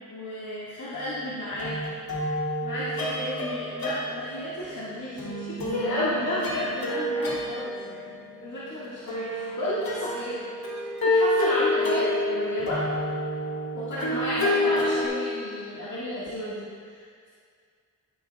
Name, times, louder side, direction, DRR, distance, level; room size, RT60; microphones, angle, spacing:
voice 1, 0.1-1.8 2.6-8.1 8.4-10.4 11.0-12.8 13.7-17.3, left 1 dB, 55° left, -10 dB, 1.8 m, -32 dB
sound 1, 0.9-1.2 1.5-4.7 5.2-15.1, left 1 dB, 85° left, 1.9 m, -29 dB
12.0 x 9.6 x 2.3 m, 2.1 s
wide cardioid pair, 100°, 35 cm